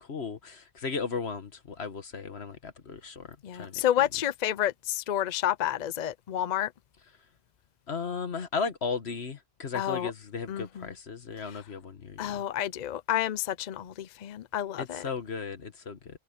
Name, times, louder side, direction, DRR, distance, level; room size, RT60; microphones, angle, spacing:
voice 1, 0.0-3.8 7.9-12.4 14.8-16.2, left 5 dB, 45° left, 1.7 m, -36 dB
voice 2, 3.4-6.7 9.7-10.1 10.5-10.9 12.2-15.0, left 11 dB, 65° left, 0.4 m, -30 dB
omnidirectional pair, 1.5 m